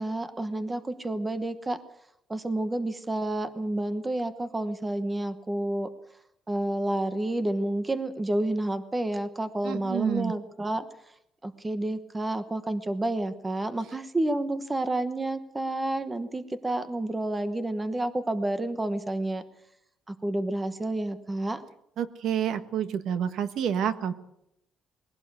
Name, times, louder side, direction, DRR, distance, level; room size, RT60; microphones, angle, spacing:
voice 1, 0.0-1.8 2.3-5.9 6.5-10.9 11.4-19.4 20.1-21.6, right 1 dB, 10° right, 11 dB, 1.0 m, -30 dB
voice 2, 9.6-10.3 22.0-24.1, right 9 dB, 60° right, 11 dB, 1.4 m, -28 dB
21.5 x 17.0 x 8.2 m, 0.79 s
cardioid pair, 175°, 0 cm